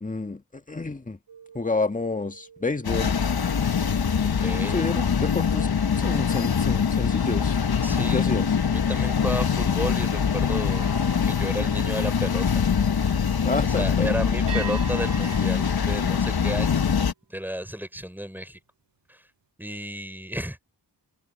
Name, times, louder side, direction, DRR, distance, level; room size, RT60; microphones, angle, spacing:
voice 1, 0.0-0.4 0.7-1.2 1.5-3.2 4.7-5.7 6.0-7.6 8.1-8.5 13.4-14.1, left 3 dB, 20° left, 1.5 m, -29 dB
sound 1, 1.3-6.8 7.3-7.6 10.6-12.8 14.5-17.0, right 9 dB, 75° right, 2.8 m, -44 dB
sound 2, 2.8-17.1, left 7 dB, 55° left, 1.3 m, -23 dB
voice 2, 4.2-4.8 7.8-8.2 8.7-10.9 11.2-12.6 13.6-16.8 17.3-18.6 19.1-19.2 19.6-20.7, equal, 5° right, 5.7 m, -33 dB
open air
cardioid pair, 50°, 43 cm